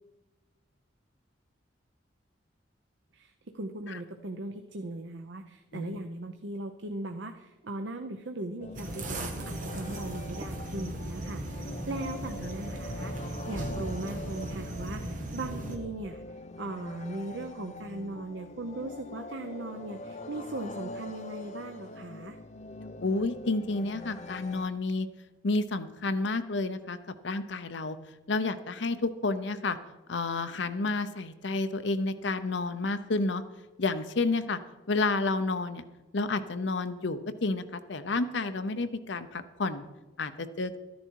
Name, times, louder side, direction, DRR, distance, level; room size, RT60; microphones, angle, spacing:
voice 1, 3.1-22.4, right 2 dB, 70° right, 6 dB, 0.8 m, -39 dB
sound 1, 8.6-24.7, left 2 dB, 35° left, 0.7 m, -44 dB
sound 2, 8.7-15.8, right 1 dB, 40° right, 1.5 m, -37 dB
voice 2, 23.0-25.1 25.4-27.0 27.2-28.0 28.3-29.8 30.1-33.4 33.8-34.6 34.9-35.8 36.1-39.8 40.2-40.7, left 3 dB, 65° left, 11 dB, 0.8 m, -30 dB
13.5 x 10.5 x 4.7 m, 1.1 s
head